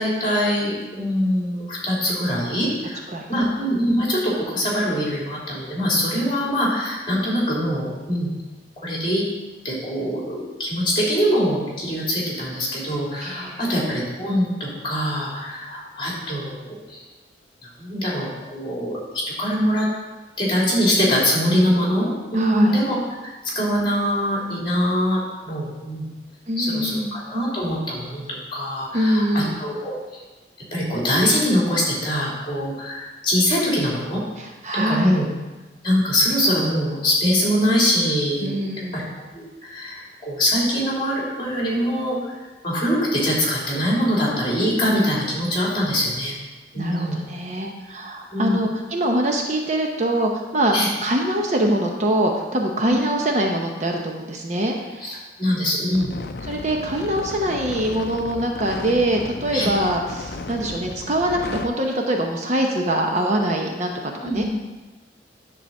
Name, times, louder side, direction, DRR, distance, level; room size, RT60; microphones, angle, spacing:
voice 1, 0.0-3.0 3.3-8.3 8.8-9.2 9.6-17.0 17.6-19.9 20.4-26.1 26.6-28.2 28.5-30.2 30.7-34.2 34.7-35.3 35.8-38.5 38.9-39.0 39.3-42.4 42.6-46.4 46.7-47.2 48.3-48.6 50.7-50.9 52.8-52.9 55.0-56.1 59.5-59.7 64.2-64.5, equal, 25° left, -5 dB, 3.0 m, -23 dB
voice 2, 3.1-3.5 13.2-13.6 22.4-22.7 26.5-27.2 28.9-29.6 34.4-35.2 38.4-39.1 46.7-55.2 56.5-64.4, right 1 dB, 40° right, 1 dB, 0.8 m, -24 dB
sound 1, 55.9-61.7, left 3 dB, 60° left, 0.5 m, -34 dB
10.5 x 3.9 x 7.2 m, 1.2 s
head